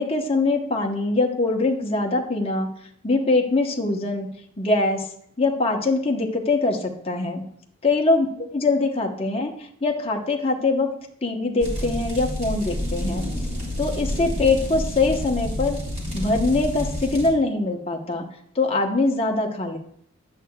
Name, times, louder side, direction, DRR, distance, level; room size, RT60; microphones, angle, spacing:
voice 1, 0.0-2.7 3.0-4.3 4.6-5.1 5.4-7.4 7.8-8.3 8.5-10.9 11.2-13.3 13.8-15.8 16.1-18.2 18.5-19.8, left 3 dB, 25° left, 1 dB, 0.9 m, -23 dB
sound 1, 11.6-17.3, left 1 dB, 35° right, 2.8 m, -29 dB
10.5 x 8.3 x 2.3 m, 0.67 s
head